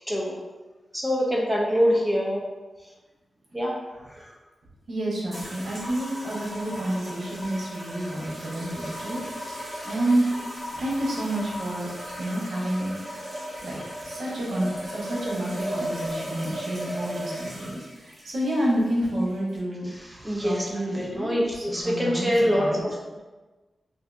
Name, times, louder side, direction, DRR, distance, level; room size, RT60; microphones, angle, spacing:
voice 1, 0.1-0.4 0.9-2.4 2.8-2.9 3.5-3.8 4.1-4.4 19.8-23.2, equal, 5° right, -4 dB, 0.5 m, -25 dB
voice 2, 4.9-10.3 10.7-11.9 12.2-12.9 13.6-13.8 14.0-19.9 20.4-22.3 22.6-22.9, right 1 dB, 75° right, -4 dB, 0.9 m, -29 dB
sound 1, 5.3-19.6, equal, 25° right, 1.0 m, -36 dB
3.5 x 2.6 x 2.5 m, 1.2 s
wide cardioid pair, 155°, 0 cm